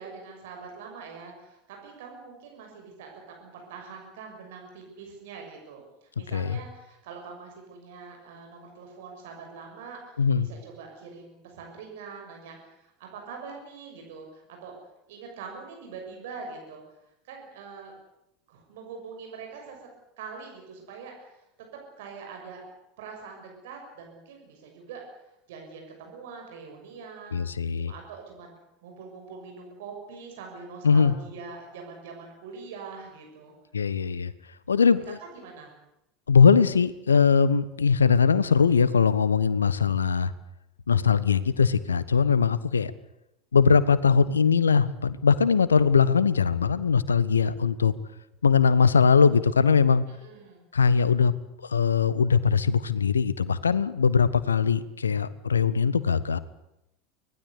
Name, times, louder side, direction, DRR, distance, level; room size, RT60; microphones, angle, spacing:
voice 1, 0.0-14.7 15.1-16.8 17.2-17.9 18.5-19.8 20.2-21.4 21.7-22.7 23.0-25.0 25.5-27.4 27.8-33.5 34.7-35.7 41.5-41.7 50.1-50.6, right 5 dB, 65° right, 2 dB, 6.4 m, -43 dB
voice 2, 10.2-10.5 27.3-27.9 30.8-31.1 33.7-34.3 34.7-35.2 36.3-40.3 40.9-42.9 43.5-47.9 48.4-50.0 50.7-51.3 51.6-56.4, left 6 dB, 80° left, 17 dB, 1.1 m, -21 dB
24.5 x 19.0 x 8.3 m, 0.85 s
figure-of-eight pair, 75°, 0 cm